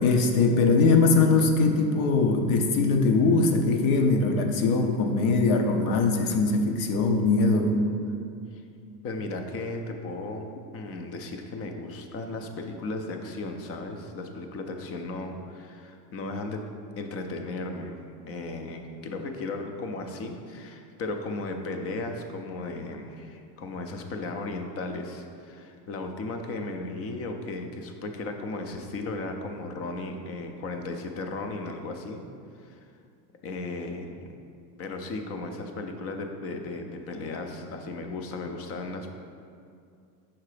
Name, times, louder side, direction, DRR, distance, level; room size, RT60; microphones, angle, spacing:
voice 1, 0.0-7.8, left 3 dB, 65° left, 4 dB, 0.8 m, -21 dB
voice 2, 9.0-16.7 17.0-18.0 18.3-32.2 32.6-32.8 33.4-34.3 34.8-39.1, left 2 dB, 30° left, 5 dB, 0.5 m, -35 dB
5.9 x 3.6 x 5.0 m, 2.4 s
supercardioid pair, 130°, 49 cm